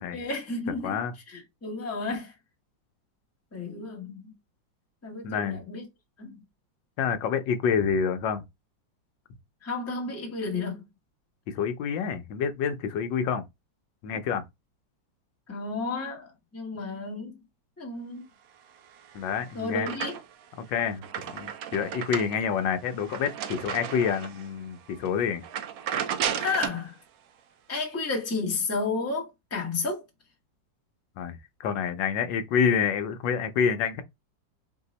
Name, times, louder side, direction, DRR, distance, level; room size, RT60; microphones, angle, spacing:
voice 1, 0.1-1.0 1.3-2.3 3.5-4.3 5.0-5.8 6.2-6.4 9.6-10.8 15.5-17.4 17.8-18.3 19.5-20.2 26.4-27.0 27.7-30.0, left 3 dB, 10° left, 0.8 m, -32 dB
voice 2, 5.2-5.6 7.0-8.4 11.5-13.4 14.0-14.4 19.1-19.9 20.6-21.0 21.3-25.4 31.2-34.0, left 7 dB, 75° left, 1.3 m, -27 dB
sound 1, 18.9-20.5 20.8-24.5 24.9-25.1 25.4-26.9, right 8 dB, 75° right, 0.8 m, -34 dB
4.1 x 2.7 x 3.9 m
omnidirectional pair, 2.1 m